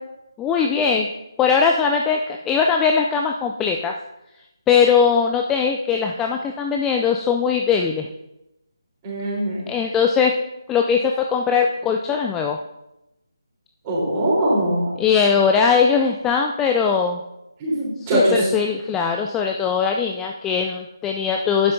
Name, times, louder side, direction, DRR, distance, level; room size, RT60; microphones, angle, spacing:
voice 1, 0.4-1.1 1.4-3.9 4.7-8.1 9.7-10.4 10.7-12.6 15.0-17.2 18.0-21.7, left 6 dB, 10° left, 2 dB, 0.3 m, -20 dB
voice 2, 9.0-9.7 13.8-14.9 17.6-18.5, right 1 dB, 20° right, -5 dB, 3.7 m, -21 dB
11.5 x 9.3 x 2.7 m, 0.92 s
figure-of-eight pair, 155°, 2 cm